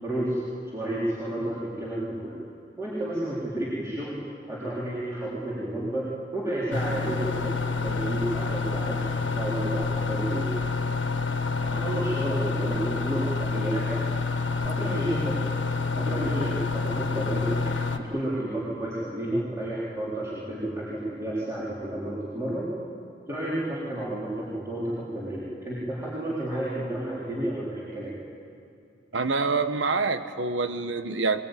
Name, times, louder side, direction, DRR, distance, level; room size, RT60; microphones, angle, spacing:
voice 1, 0.0-2.4 2.8-4.1 4.5-6.1 6.3-10.5 11.6-14.0 14.6-15.4 15.9-17.6 18.0-22.7 23.3-28.1, right 1 dB, 15° right, -9 dB, 4.0 m, -31 dB
sound 1, 6.7-18.0, left 4 dB, 80° left, 1.7 m, -28 dB
voice 2, 29.1-31.4, right 4 dB, 90° right, 9 dB, 1.2 m, -26 dB
21.5 x 21.5 x 9.2 m, 2.5 s
head